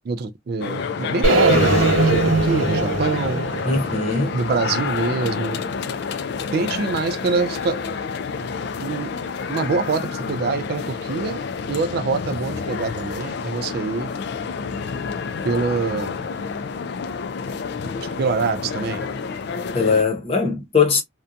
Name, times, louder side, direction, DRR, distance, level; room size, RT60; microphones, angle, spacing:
voice 1, 0.1-1.7 2.0-3.4 4.3-5.6 6.5-7.8 8.8-9.1 9.5-11.4 11.7-14.1 15.4-16.2 18.2-19.1, right 4 dB, 50° right, 0.3 m, -24 dB
sound 1, 0.6-20.0, left 5 dB, 55° left, 0.3 m, -29 dB
sound 2, 1.2-5.3, right 2 dB, 80° right, 0.8 m, -21 dB
voice 2, 3.6-4.4 19.7-21.0, left 5 dB, 30° left, 0.8 m, -20 dB
2.6 x 2.2 x 2.5 m
head